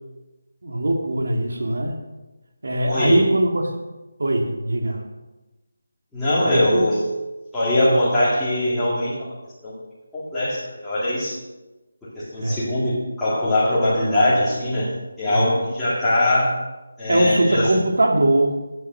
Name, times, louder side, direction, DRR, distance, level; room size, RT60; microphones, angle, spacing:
voice 1, 0.6-1.9 2.6-3.7 4.2-5.0 6.4-6.9 12.4-12.7 15.3-15.5 17.1-18.6, right 1 dB, 65° right, 2 dB, 2.5 m, -21 dB
voice 2, 2.9-3.3 6.1-7.0 7.5-9.2 9.6-9.7 10.1-11.4 12.2-14.9 15.2-16.6 17.0-17.7, left 1 dB, 5° left, -13 dB, 2.0 m, -21 dB
11.5 x 8.4 x 6.4 m, 1.1 s
figure-of-eight pair, 180°, 0 cm